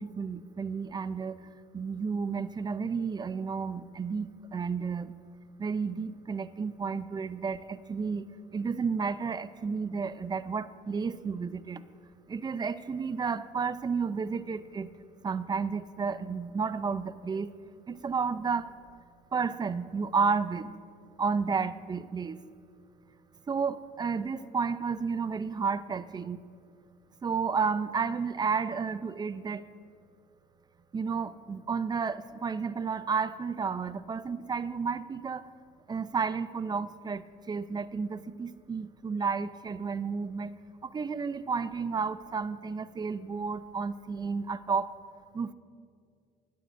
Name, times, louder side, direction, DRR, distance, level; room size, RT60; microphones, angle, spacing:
voice 1, 0.0-5.2 5.6-8.3 8.5-11.8 12.3-14.9 15.2-17.5 17.9-18.7 19.3-20.7 21.2-22.4 23.5-26.4 27.2-29.6 30.9-35.5 35.9-40.5 40.8-44.9 45.3-45.5, right 5 dB, 25° right, 14 dB, 0.5 m, -32 dB
20.0 x 12.0 x 2.6 m, 2.2 s
cardioid pair, 110°, 17 cm